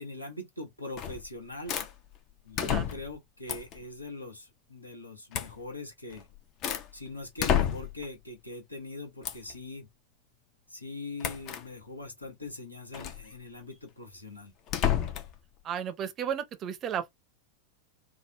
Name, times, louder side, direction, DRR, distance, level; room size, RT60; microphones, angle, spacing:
voice 1, 0.0-1.8 2.4-6.3 6.9-9.9 10.7-14.5, left 2 dB, 85° left, 1.1 m, -42 dB
sound 1, 1.0-1.3 1.7-1.9 2.6-3.2 3.5-3.8 5.3-5.6 6.1-6.9 7.4-8.1 9.2-9.5 11.2-11.6 12.9-13.2 14.7-15.4, left 9 dB, 35° left, 0.6 m, -30 dB
voice 2, 15.6-17.1, right 8 dB, 30° right, 0.6 m, -33 dB
3.6 x 2.0 x 3.2 m
figure-of-eight pair, 90°, 0 cm